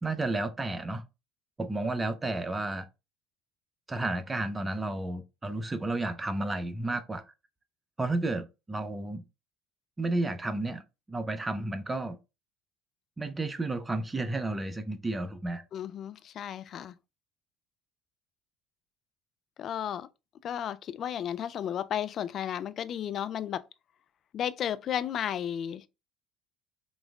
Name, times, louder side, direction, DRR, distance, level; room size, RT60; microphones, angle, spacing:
voice 1, 0.0-1.0 1.6-2.9 3.9-7.3 8.0-9.2 10.0-12.2 13.2-15.6, right 2 dB, 20° right, 0.6 m, -32 dB
voice 2, 15.7-16.9 19.6-20.1 20.4-23.6 24.3-25.9, left 9 dB, 45° left, 0.3 m, -33 dB
5.1 x 3.0 x 2.3 m
figure-of-eight pair, 60°, 0 cm